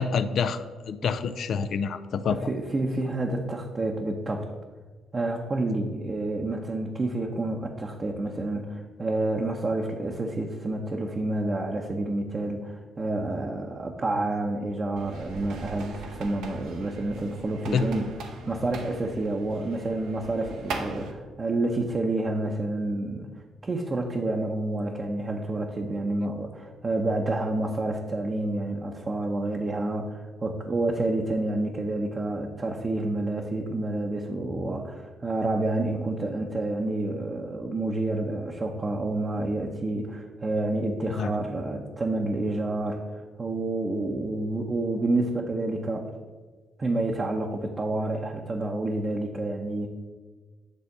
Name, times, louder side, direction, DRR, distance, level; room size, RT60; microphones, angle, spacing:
voice 1, 0.0-2.5 17.6-17.9 41.2-41.3, left 6 dB, 60° left, 11 dB, 0.4 m, -27 dB
voice 2, 2.3-4.5 5.1-18.1 18.5-23.3 23.6-43.0 43.4-46.1 46.8-49.9, right 2 dB, 35° right, 0 dB, 0.8 m, -29 dB
sound 1, 15.0-21.1, right 3 dB, 75° right, 0.9 m, -39 dB
8.3 x 3.4 x 6.6 m, 1.4 s
supercardioid pair, 65°, 0 cm